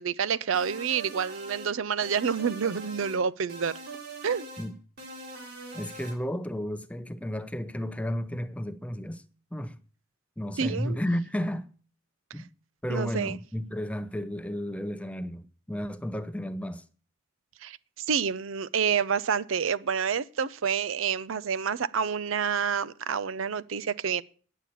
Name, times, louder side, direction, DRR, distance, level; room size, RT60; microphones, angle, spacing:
voice 1, 0.0-3.8 4.2-4.5 10.6-11.0 12.9-13.4 17.6-24.2, right 6 dB, 85° right, 0.6 m, -28 dB
sound 1, 0.5-1.7 2.0-3.2 3.5-4.7 5.0-6.2, right 2 dB, 55° right, 3.6 m, -42 dB
voice 2, 5.7-9.2 9.5-9.8 10.4-11.7 12.3-12.5 12.8-16.8, equal, 5° left, 0.6 m, -33 dB
10.0 x 7.6 x 8.5 m
head